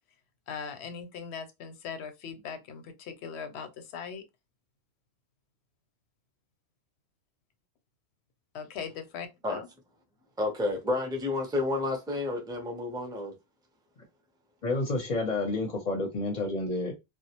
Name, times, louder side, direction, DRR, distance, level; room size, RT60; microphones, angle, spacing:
voice 1, 0.5-4.2 8.5-9.7, left 6 dB, 85° left, 0.8 m, -40 dB
voice 2, 10.4-13.3, left 2 dB, 5° right, 0.4 m, -30 dB
voice 3, 14.6-16.9, left 2 dB, 45° left, 0.6 m, -29 dB
2.3 x 2.0 x 2.8 m
omnidirectional pair, 1.1 m